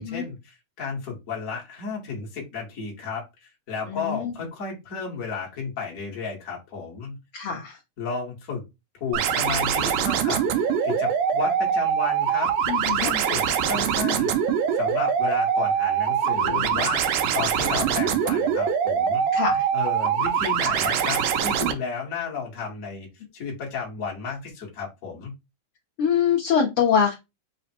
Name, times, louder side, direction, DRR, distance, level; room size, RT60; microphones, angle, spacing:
voice 1, 0.0-7.2 8.0-8.6 9.0-12.5 12.9-14.4 14.7-19.2 19.7-25.3, left 5 dB, 55° left, -2 dB, 0.9 m, -33 dB
voice 2, 3.9-4.3 7.3-7.8 12.7-13.1 16.4-16.9 19.3-19.7 26.0-27.1, left 7 dB, 75° left, -1 dB, 1.2 m, -24 dB
sound 1, 9.1-21.7, right 8 dB, 90° right, 2.1 m, -23 dB
5.0 x 2.1 x 4.2 m, 0.23 s
omnidirectional pair, 3.5 m